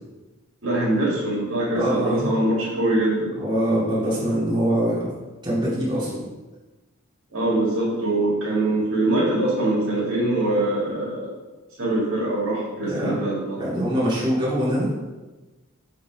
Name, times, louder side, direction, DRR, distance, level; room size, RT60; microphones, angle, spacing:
voice 1, 0.6-3.4 7.3-11.3 11.8-13.6, right 1 dB, 70° right, -5 dB, 2.3 m, -23 dB
voice 2, 1.7-2.3 3.4-5.1 5.4-6.2 12.8-13.2 13.5-14.9, equal, 20° right, -9 dB, 2.3 m, -23 dB
6.7 x 3.9 x 4.7 m, 1.2 s
head